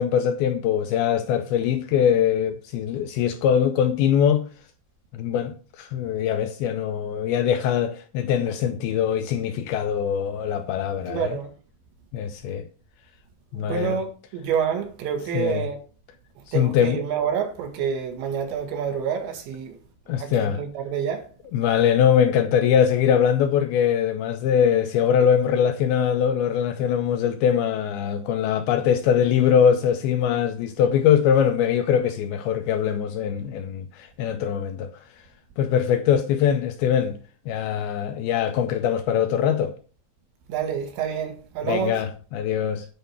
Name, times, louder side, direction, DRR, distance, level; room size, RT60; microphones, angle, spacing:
voice 1, 0.0-4.5 5.1-11.4 12.1-12.7 13.5-14.0 15.3-15.6 16.5-17.0 20.1-20.6 21.5-34.9 35.6-37.2 37.5-39.7 41.6-42.9, left 8 dB, 80° left, 2.3 m, -22 dB
voice 2, 11.1-11.5 13.5-15.8 16.5-19.8 20.2-21.3 40.5-42.0, right 7 dB, 90° right, 4.1 m, -28 dB
10.0 x 4.6 x 6.8 m
omnidirectional pair, 5.0 m